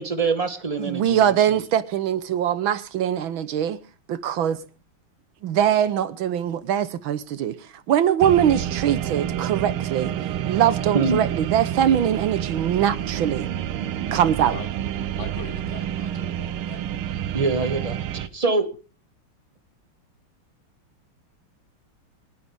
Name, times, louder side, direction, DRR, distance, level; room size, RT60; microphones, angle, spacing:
voice 1, 0.0-1.6 10.9-11.2 17.3-18.7, right 3 dB, 20° right, 1.6 m, -25 dB
voice 2, 0.8-3.8 4.1-4.6 5.4-7.6 7.9-10.1 10.5-13.5 14.1-14.5, right 10 dB, 75° right, 1.7 m, -22 dB
sound 1, 8.2-18.3, right 10 dB, 90° right, 1.8 m, -28 dB
voice 3, 14.1-14.7 15.2-16.8, left 5 dB, 35° left, 1.7 m, -40 dB
28.5 x 9.6 x 3.5 m
omnidirectional pair, 2.3 m